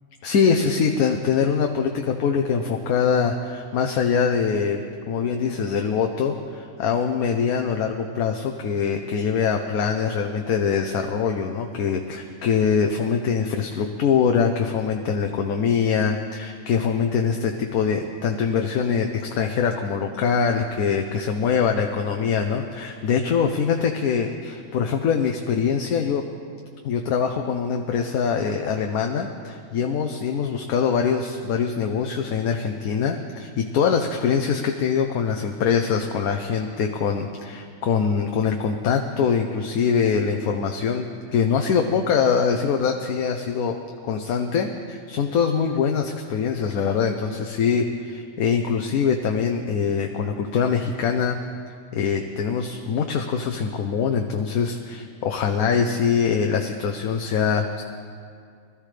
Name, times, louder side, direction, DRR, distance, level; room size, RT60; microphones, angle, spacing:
voice 1, 0.2-26.3 26.8-43.8 44.0-51.4 51.9-57.8, left 6 dB, 90° left, 4 dB, 1.2 m, -23 dB
21.0 x 13.5 x 3.3 m, 2.3 s
omnidirectional pair, 1.5 m